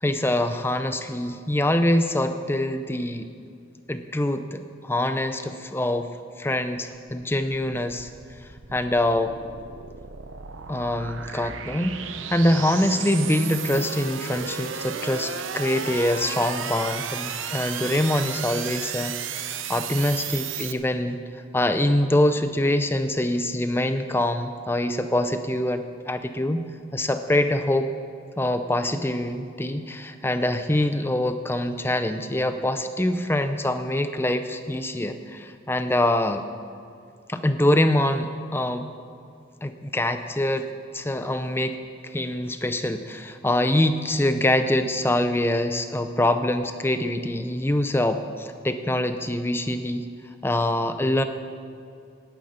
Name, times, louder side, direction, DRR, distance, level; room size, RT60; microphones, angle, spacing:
voice 1, 0.0-3.3 3.9-6.1 6.4-8.1 8.7-9.3 10.7-12.0 12.3-27.9 28.4-36.4 37.3-38.9 39.6-40.7 40.9-41.8 42.0-50.1 50.4-51.2, left 1 dB, 10° left, 9 dB, 0.5 m, -24 dB
sound 1, 7.9-20.7, right 7 dB, 90° right, 0.8 m, -34 dB
11.5 x 9.5 x 8.6 m, 2.4 s
head